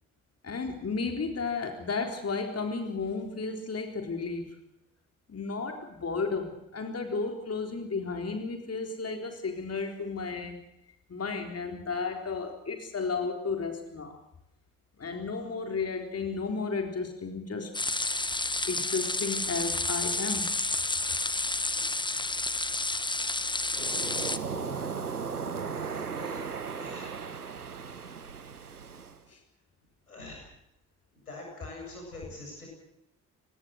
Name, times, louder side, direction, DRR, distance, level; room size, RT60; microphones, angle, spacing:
voice 1, 0.4-4.6 5.3-10.6 11.1-14.2 15.0-17.7 18.7-20.6 29.3-29.4, left 4 dB, 35° left, 5 dB, 3.9 m, -33 dB
sound 1, 17.7-24.4, left 2 dB, 10° left, 1.4 m, -30 dB
voice 2, 23.7-25.0 25.6-26.5 26.8-27.1 30.1-30.5 31.1-32.7, left 2 dB, 85° left, -1 dB, 7.8 m, -45 dB
Waves surf, 23.7-29.2, right 6 dB, 90° right, 1.1 m, -36 dB
27.5 x 20.0 x 6.4 m, 0.84 s
figure-of-eight pair, 45°, 44 cm